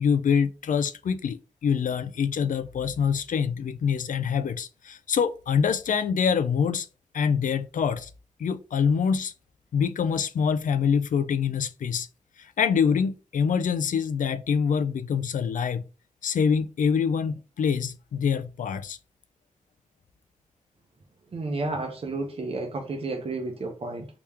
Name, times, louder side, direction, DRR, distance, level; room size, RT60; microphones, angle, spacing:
voice 1, 0.0-6.9 7.1-8.1 8.4-9.3 9.7-12.1 12.4-15.9 16.2-19.0, left 6 dB, 90° left, 0.4 m, -25 dB
voice 2, 21.3-24.1, right 2 dB, 50° right, 0.7 m, -31 dB
3.4 x 3.0 x 3.3 m
wide cardioid pair, 170°, 13 cm